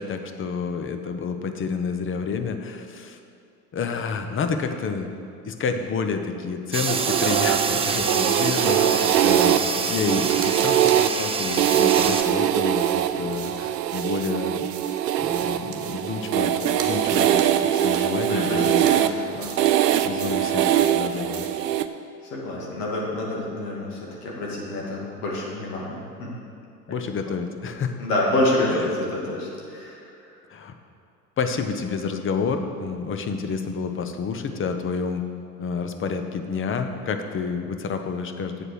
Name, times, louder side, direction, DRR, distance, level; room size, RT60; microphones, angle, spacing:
voice 1, 0.0-3.2 3.7-5.1 5.4-14.7 15.2-18.9 20.0-21.5 26.9-27.9 28.7-28.9 30.5-30.7 31.4-35.2 35.6-38.6, left 5 dB, 25° left, 7 dB, 0.8 m, -29 dB
sound 1, 6.7-12.2, right 5 dB, 10° right, 0.5 m, -27 dB
sound 2, 6.8-7.7 8.1-8.4 8.8-9.7 10.2-11.0 11.6-12.2 12.7-14.3 14.8-16.1 16.6-16.9 17.1-17.5 17.8-18.0 18.6-19.0 19.4-19.7 20.2-20.5 20.8-21.0 21.3-21.6, right 6 dB, 30° right, 1.4 m, -40 dB
sound 3, 6.9-21.9, right 11 dB, 80° right, 0.6 m, -22 dB
voice 2, 8.5-9.5 13.2-13.3 18.3-19.6 19.9-20.2 22.3-26.3 28.0-30.0, left 1 dB, 65° left, -3 dB, 2.4 m, -28 dB
7.9 x 7.7 x 6.4 m, 2.5 s
figure-of-eight pair, 75°, 48 cm